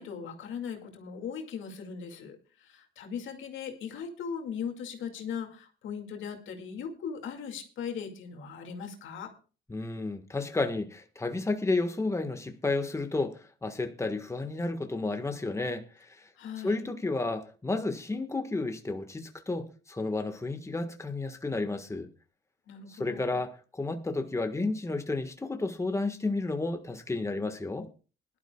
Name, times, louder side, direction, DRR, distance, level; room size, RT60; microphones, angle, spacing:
voice 1, 0.0-9.3 16.3-16.9 22.7-23.4, left 7 dB, 75° left, 2.3 m, -39 dB
voice 2, 9.7-16.3 16.6-22.1 22.9-27.9, left 3 dB, 15° left, 1.5 m, -32 dB
20.5 x 12.0 x 2.3 m
cardioid pair, 90°, 20 cm